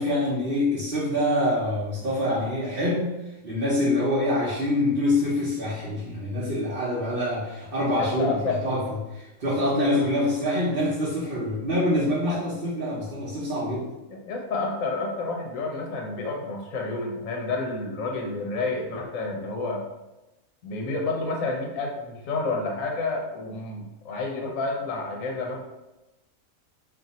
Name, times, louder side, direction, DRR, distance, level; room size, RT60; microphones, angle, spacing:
voice 1, 0.0-13.9, left 1 dB, 45° right, -9 dB, 0.8 m, -25 dB
voice 2, 8.0-8.6 12.3-12.4 14.1-19.8 20.6-25.7, left 3 dB, 65° left, 0 dB, 1.1 m, -30 dB
2.7 x 2.5 x 4.0 m, 1.0 s
omnidirectional pair, 1.6 m